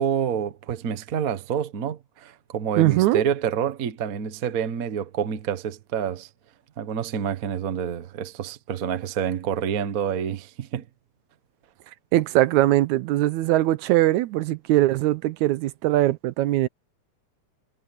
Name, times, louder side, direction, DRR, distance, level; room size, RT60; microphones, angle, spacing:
voice 1, 0.0-6.3 6.8-10.8, right 8 dB, 60° right, 0.8 m, -28 dB
voice 2, 2.8-3.2 12.1-16.7, right 15 dB, 80° right, 2.0 m, -21 dB
omnidirectional pair, 3.5 m